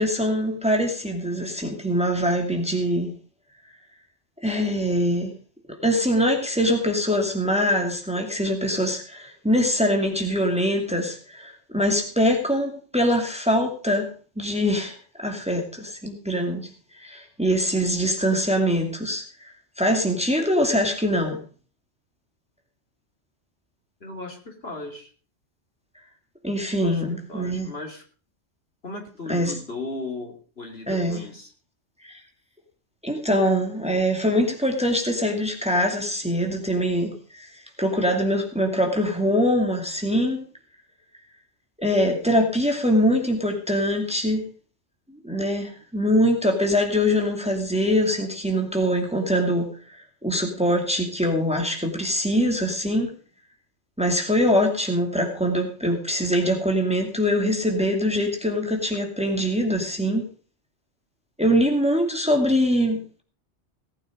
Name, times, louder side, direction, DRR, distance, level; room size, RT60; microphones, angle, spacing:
voice 1, 0.0-3.1 4.4-5.3 5.8-16.7 17.0-19.3 19.8-21.4 26.4-27.7 29.3-29.5 30.9-31.2 32.0-32.2 33.0-40.4 41.8-44.5 45.2-49.7 50.2-53.1 54.0-60.3 61.4-63.2, equal, 5° right, 3 dB, 2.5 m, -23 dB
voice 2, 24.0-25.1 26.7-27.0 27.3-28.0 28.8-31.5, left 2 dB, 60° left, 3 dB, 3.5 m, -36 dB
18.0 x 9.0 x 5.2 m, 0.39 s
omnidirectional pair, 1.2 m